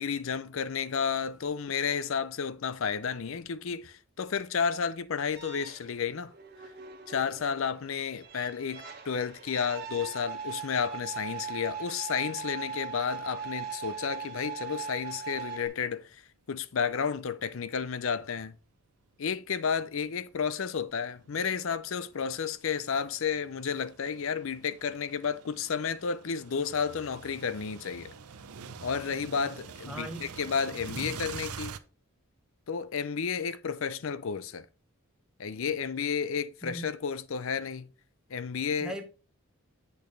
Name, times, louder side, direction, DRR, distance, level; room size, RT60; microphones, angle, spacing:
voice 1, 0.0-6.3 7.1-16.2 16.5-18.6 19.2-28.1 28.8-31.8 32.7-34.7 35.4-37.9 38.3-38.9, left 6 dB, 60° left, 0.5 m, -32 dB
sound 1, 5.4-15.7, right 6 dB, 45° right, 1.6 m, -40 dB
sound 2, 15.0-15.2 15.7-15.8 16.8-18.4 19.1-31.8, right 6 dB, 80° right, 0.6 m, -46 dB
voice 2, 29.9-30.2 30.9-31.2 36.6-36.9 38.8-39.0, right 1 dB, 5° right, 0.9 m, -39 dB
8.4 x 6.2 x 3.3 m
head